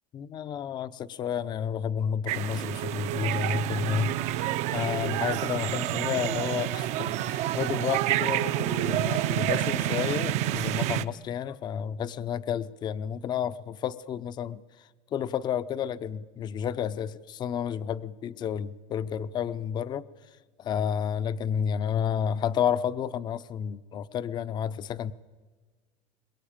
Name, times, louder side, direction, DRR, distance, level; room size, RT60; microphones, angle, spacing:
voice 1, 0.1-20.1 20.6-25.1, left 8 dB, 30° left, 15 dB, 0.7 m, -31 dB
sound 1, 2.3-11.0, right 13 dB, 50° right, 0.8 m, -28 dB
22.5 x 21.0 x 8.8 m, 1.4 s
supercardioid pair, 145°, 15 cm